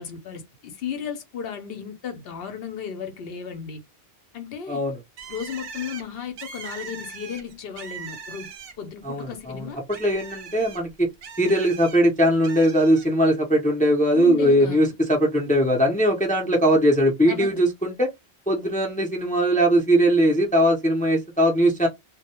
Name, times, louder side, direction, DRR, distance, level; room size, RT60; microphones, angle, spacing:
voice 1, 0.0-3.8 4.3-4.8 5.3-8.5 8.8-9.8 14.1-14.9 17.3-17.6, left 7 dB, 70° left, 0.8 m, -34 dB
voice 2, 4.7-5.0 9.0-9.7 10.0-11.1 11.4-18.1 18.5-21.9, equal, 10° left, 0.5 m, -20 dB
Bird, 5.2-9.0 9.4-12.0 12.4-13.1, right 6 dB, 70° right, 0.8 m, -40 dB
2.1 x 2.1 x 2.8 m
omnidirectional pair, 1.1 m